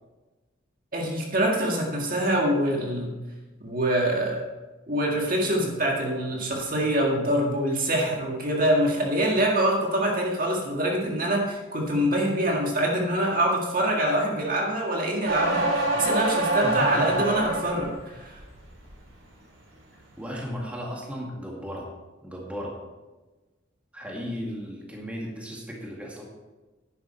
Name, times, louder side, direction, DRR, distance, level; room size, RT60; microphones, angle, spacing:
voice 1, 0.9-3.1 3.6-4.4 4.9-18.4, right 1 dB, 45° right, 0 dB, 1.9 m, -25 dB
sound 1, 15.3-18.0 18.4-18.9, right 2 dB, 75° right, 3.0 m, -26 dB
voice 2, 16.6-17.3 20.2-21.9 22.2-22.8 23.9-26.2, equal, 5° right, -3 dB, 2.0 m, -35 dB
11.0 x 10.5 x 4.5 m, 1.2 s
head